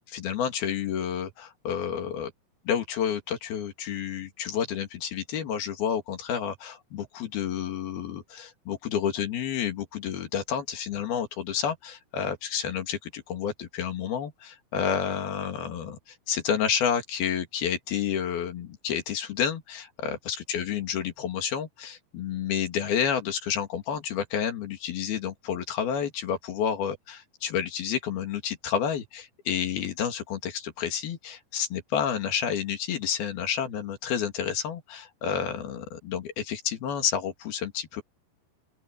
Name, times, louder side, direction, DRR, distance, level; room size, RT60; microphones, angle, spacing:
voice 1, 0.1-2.3 2.7-16.0 16.3-38.0, left 8 dB, 80° left, 4.3 m, -30 dB
open air
omnidirectional pair, 4.3 m